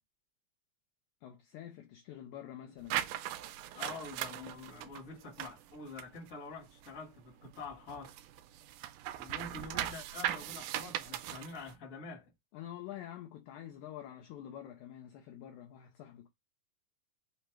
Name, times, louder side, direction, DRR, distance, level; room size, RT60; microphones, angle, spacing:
voice 1, 1.2-3.0 12.5-16.3, left 11 dB, 80° left, 1.7 m, -47 dB
sound 1, 2.9-7.1 7.4-11.7, right 13 dB, 80° right, 2.0 m, -39 dB
voice 2, 3.7-8.1 9.2-12.3, left 3 dB, 40° left, 1.1 m, -46 dB
5.5 x 2.0 x 4.5 m
omnidirectional pair, 4.1 m